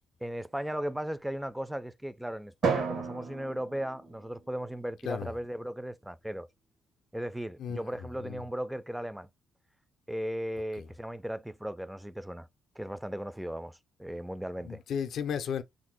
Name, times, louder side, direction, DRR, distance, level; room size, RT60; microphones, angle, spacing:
voice 1, 0.2-6.5 7.1-9.3 10.1-12.5 12.8-14.8, equal, 5° right, 0.3 m, -36 dB
Drum, 2.6-4.9, right 5 dB, 75° right, 0.9 m, -33 dB
voice 2, 7.6-8.4 10.8-10.9 14.6-15.6, left 7 dB, 70° left, 0.4 m, -35 dB
2.5 x 2.0 x 3.7 m
cardioid pair, 90°, 0 cm